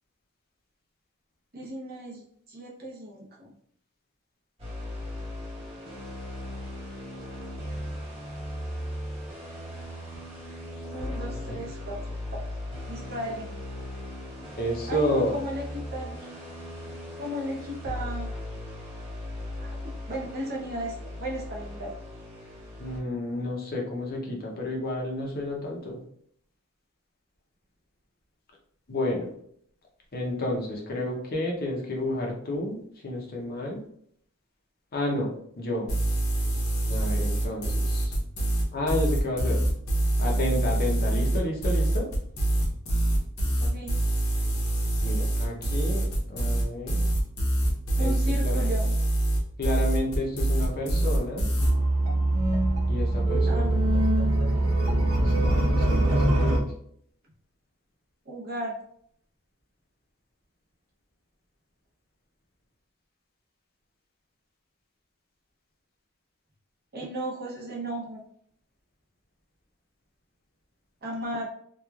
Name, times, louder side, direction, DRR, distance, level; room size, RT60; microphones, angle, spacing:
voice 1, 1.5-3.5 10.9-12.4 12.9-13.5 14.9-16.2 17.2-18.3 19.6-21.9 43.6-44.0 48.0-49.0 53.4-53.8 58.3-58.8 66.9-68.2 71.0-71.5, right 1 dB, 45° right, -3 dB, 0.7 m, -35 dB
sound 1, 4.6-23.0, left 1 dB, 30° right, 1.1 m, -38 dB
voice 2, 14.6-15.4 22.8-26.0 28.9-29.3 30.1-33.8 34.9-35.9 36.9-38.1 38.7-39.6 40.2-42.1 45.0-47.0 48.0-48.1 48.4-48.7 49.6-51.5 52.9-53.8 55.1-56.6, left 1 dB, 45° left, 0 dB, 0.6 m, -31 dB
sound 2, 35.9-51.7, right 1 dB, 75° left, 0.9 m, -25 dB
sound 3, 51.6-56.6, right 1 dB, 90° right, 1.0 m, -23 dB
3.0 x 2.2 x 2.3 m, 0.65 s
head